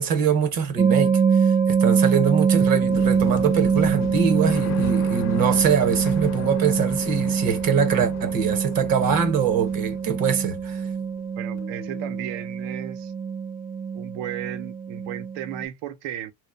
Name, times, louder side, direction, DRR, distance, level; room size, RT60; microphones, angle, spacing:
voice 1, 0.0-10.8, right 7 dB, 55° right, 0.9 m, -23 dB
sound 1, 0.8-15.7, right 6 dB, 20° right, 0.4 m, -24 dB
sound 2, 1.1-11.2 11.5-12.3, left 10 dB, 45° left, 0.4 m, -37 dB
voice 2, 11.4-13.1 13.9-16.3, right 11 dB, 90° right, 0.6 m, -34 dB
2.9 x 2.1 x 2.4 m
cardioid pair, 105°, 42 cm